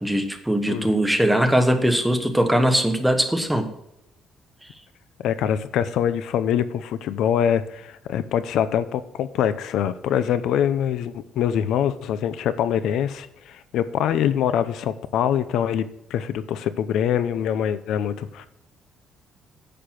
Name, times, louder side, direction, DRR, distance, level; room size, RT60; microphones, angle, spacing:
voice 1, 0.0-3.7, right 1 dB, 5° right, 6 dB, 1.1 m, -20 dB
voice 2, 5.2-18.5, left 9 dB, 75° left, 14 dB, 0.7 m, -24 dB
10.0 x 6.8 x 5.9 m, 0.84 s
cardioid pair, 155°, 0 cm